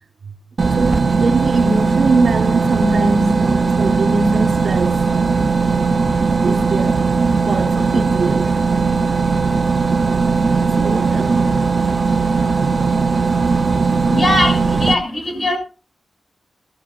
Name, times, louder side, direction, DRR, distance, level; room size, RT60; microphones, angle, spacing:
sound 1, 0.6-14.9, right 4 dB, 45° right, 0.5 m, -18 dB
voice 1, 0.6-5.5 6.4-7.0 7.4-8.6 10.8-11.7, right 3 dB, 70° right, 1.3 m, -22 dB
voice 2, 14.1-15.6, left 1 dB, 40° left, 6.2 m, -19 dB
18.5 x 13.5 x 2.5 m
wide cardioid pair, 125°, 0 cm